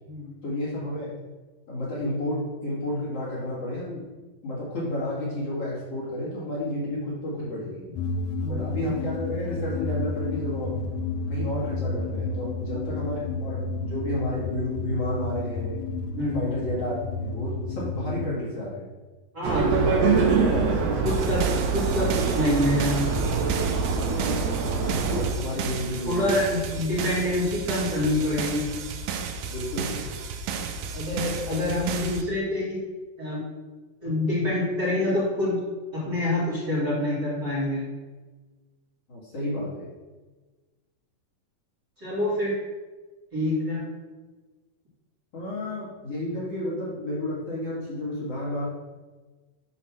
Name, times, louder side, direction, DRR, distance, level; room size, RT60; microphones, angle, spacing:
voice 1, 0.4-1.1 1.7-4.0 4.4-7.8 8.5-10.7 11.3-15.8 16.3-18.9 19.6-20.1 20.4-21.1 24.1-24.4 24.9-26.5 29.5-30.1 39.1-39.9 45.3-48.6, left 1 dB, 50° left, -9 dB, 2.8 m, -31 dB
sound 1, 8.0-18.3, left 3 dB, 80° left, 1.9 m, -31 dB
voice 2, 19.3-19.7 21.0-21.5 21.7-23.1 26.1-28.7 30.9-32.8 33.2-33.4 34.0-35.6 35.9-37.8 42.0-42.5 43.3-43.8, left 1 dB, 35° right, -9 dB, 2.2 m, -26 dB
sound 2, 19.4-25.3, right 5 dB, 65° right, 1.7 m, -24 dB
sound 3, 21.1-32.2, right 5 dB, 90° right, 2.4 m, -33 dB
8.8 x 3.2 x 5.8 m, 1.3 s
omnidirectional pair, 4.0 m